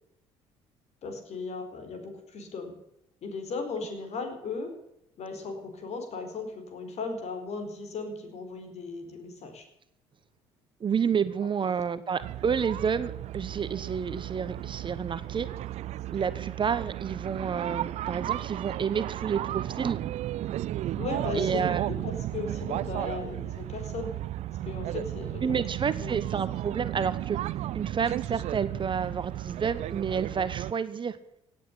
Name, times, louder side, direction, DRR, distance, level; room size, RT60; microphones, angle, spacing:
voice 1, 1.0-2.7 3.2-4.7 5.2-9.7 21.0-24.2 24.6-25.6 26.0-26.1, left 4 dB, 50° left, 6 dB, 4.4 m, -36 dB
voice 2, 10.8-15.5 16.1-20.0 21.3-21.9 25.4-31.2, right 6 dB, 35° right, 14 dB, 1.1 m, -30 dB
sound 1, 12.2-30.7, right 13 dB, 55° right, 0.5 m, -34 dB
17.5 x 8.4 x 8.2 m, 0.81 s
hypercardioid pair, 55°, 14 cm